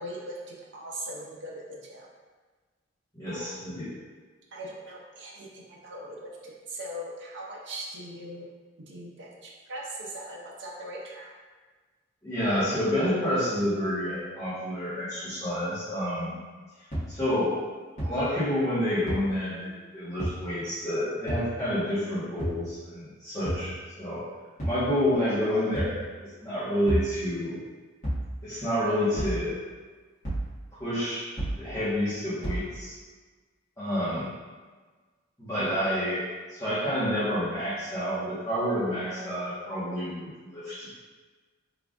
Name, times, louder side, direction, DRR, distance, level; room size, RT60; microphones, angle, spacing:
voice 1, 0.0-2.1 3.3-3.5 4.5-8.5 8.9-11.3, right 1 dB, 60° right, -3 dB, 0.6 m, -40 dB
voice 2, 3.1-3.9 12.2-16.4 17.1-17.6 18.0-23.7 24.0-24.2 24.6-25.9 26.2-27.6 28.4-29.6 30.8-31.3 31.6-32.9 33.8-34.3 35.4-40.9, equal, 15° left, -16 dB, 1.2 m, -29 dB
sound 1, 16.9-17.0 18.0-18.1 19.1-19.2 20.2-20.4 21.3-21.4 22.4-22.6 23.4-23.7 24.6-24.8 25.7-26.0 26.9-27.1 28.0-28.3 29.2-29.4 30.2-30.5 31.4-31.6 32.4-32.6, right 1 dB, 35° left, 1.5 m, -29 dB
3.7 x 3.4 x 2.4 m, 1.4 s
head